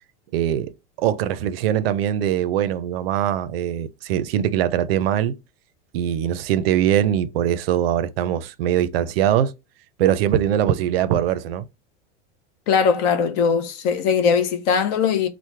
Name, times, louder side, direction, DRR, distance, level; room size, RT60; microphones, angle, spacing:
voice 1, 0.3-0.7 1.0-5.4 5.9-9.5 10.0-11.7, right 10 dB, 85° right, 0.5 m, -22 dB
voice 2, 12.7-15.3, left 6 dB, 45° left, 0.6 m, -20 dB
3.0 x 2.1 x 3.2 m
supercardioid pair, 155°, 29 cm